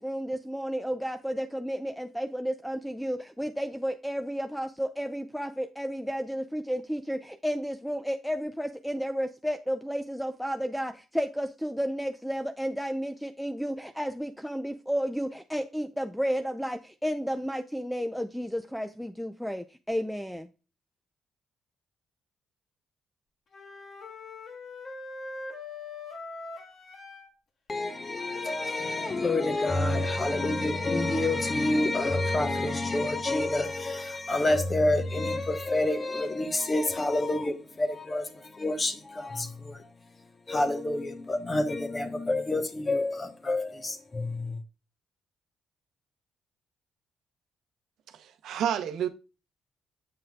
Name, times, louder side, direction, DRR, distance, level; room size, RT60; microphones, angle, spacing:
voice 1, 0.0-20.5, equal, ahead, 0.4 m, -32 dB
Wind instrument woodwind instrument, 23.5-27.3 28.2-31.8, left 3 dB, 55° left, 1.6 m, -42 dB
voice 2, 27.7-39.8 40.5-44.6, left 2 dB, 25° left, 1.0 m, -28 dB
voice 3, 48.2-49.1, right 9 dB, 80° right, 0.7 m, -29 dB
7.7 x 5.6 x 2.3 m
cardioid pair, 90°, 0 cm